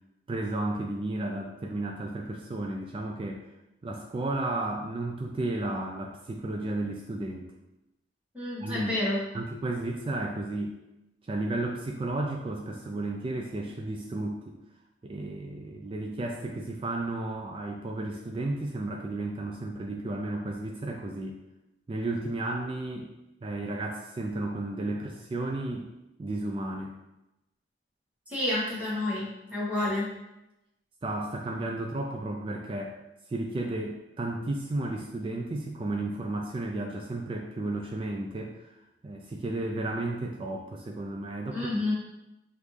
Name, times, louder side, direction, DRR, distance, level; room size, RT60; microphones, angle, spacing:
voice 1, 0.3-3.4 3.8-7.5 8.6-9.0 9.3-10.8 11.3-14.5 15.0-21.4 21.9-23.1 23.4-25.9 26.2-26.9 31.0-33.0 33.3-38.6 39.0-41.9, right 2 dB, 30° right, 1 dB, 0.3 m, -33 dB
voice 2, 8.3-9.2 28.3-30.1 41.5-41.9, left 1 dB, 10° right, -8 dB, 1.4 m, -29 dB
5.2 x 2.5 x 3.2 m, 0.92 s
head